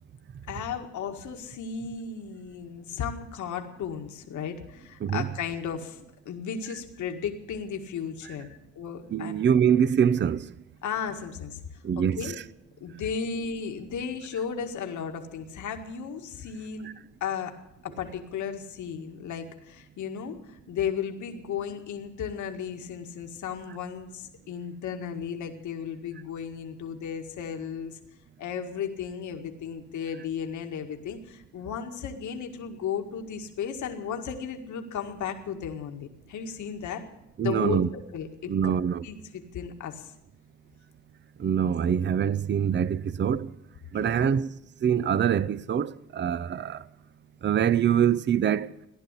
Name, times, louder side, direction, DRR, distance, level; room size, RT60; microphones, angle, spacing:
voice 1, 0.5-6.0 6.3-9.3 10.8-11.6 12.0-12.4 12.8-16.9 17.2-17.6 17.8-28.0 28.4-37.0 37.4-38.7 39.0-40.1 43.9-44.4, left 7 dB, 75° left, 1.9 m, -35 dB
voice 2, 9.1-10.5 11.8-12.3 16.8-16.9 37.4-37.9 38.5-39.1 41.4-43.5 43.9-44.5 44.8-46.9 47.4-48.8, right 8 dB, 35° right, 0.6 m, -24 dB
16.0 x 11.0 x 8.3 m
cardioid pair, 90°, 30 cm